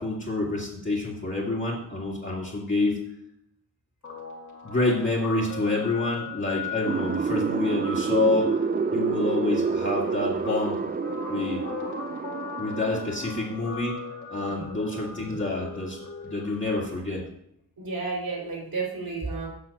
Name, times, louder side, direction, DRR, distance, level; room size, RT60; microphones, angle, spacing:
voice 1, 0.0-3.0 4.6-8.5 8.9-10.8 11.3-11.6 12.6-14.0 14.3-17.2, left 2 dB, 30° left, -5 dB, 2.3 m, -27 dB
Guitar, 4.0-16.7, left 5 dB, 50° left, 2.3 m, -39 dB
sound 1, 6.9-13.6, right 5 dB, 25° right, 0.3 m, -28 dB
voice 2, 17.8-19.5, right 4 dB, 65° right, -3 dB, 4.0 m, -32 dB
7.9 x 5.9 x 7.0 m, 0.74 s
wide cardioid pair, 90°, 38 cm